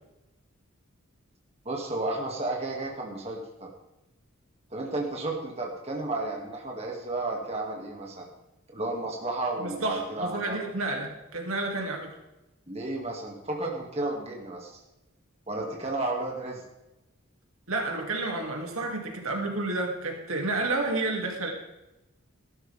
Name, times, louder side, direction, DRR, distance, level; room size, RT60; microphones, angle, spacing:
voice 1, 1.6-3.7 4.7-8.3 8.7-10.6 12.7-14.8 15.5-16.6, right 2 dB, 30° right, -1 dB, 2.4 m, -32 dB
voice 2, 9.6-12.1 17.7-21.5, right 2 dB, 80° right, 1 dB, 2.7 m, -30 dB
14.0 x 13.0 x 3.6 m, 0.96 s
head